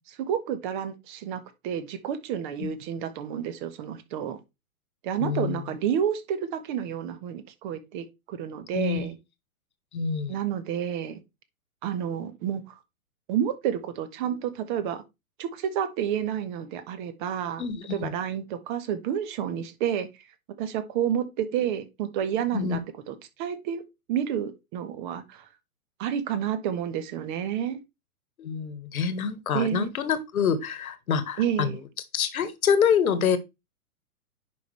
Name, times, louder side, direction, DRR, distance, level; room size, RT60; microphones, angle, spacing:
voice 1, 0.2-4.4 5.0-9.1 10.3-11.2 11.8-12.7 13.3-15.0 15.4-17.6 17.9-20.1 20.6-22.8 23.1-25.4 26.0-27.8 29.5-29.9 31.4-31.7, right 9 dB, 35° right, 1.3 m, -30 dB
voice 2, 5.2-5.6 8.7-9.1 9.9-10.3 17.6-18.1 22.5-22.8 28.4-31.8 32.1-33.4, left 7 dB, 70° left, 1.6 m, -26 dB
10.0 x 5.3 x 3.3 m
hypercardioid pair, 135°, 44 cm